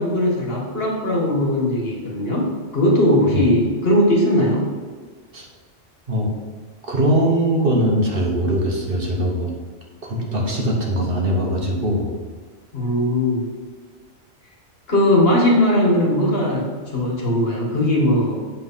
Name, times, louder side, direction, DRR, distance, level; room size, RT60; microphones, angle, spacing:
voice 1, 0.0-4.7 12.7-13.5 14.9-18.5, left 1 dB, 50° left, -2 dB, 1.9 m, -19 dB
voice 2, 6.8-9.5 10.0-12.1, right 1 dB, 45° right, -1 dB, 1.4 m, -21 dB
8.1 x 4.7 x 5.6 m, 1.5 s
omnidirectional pair, 1.3 m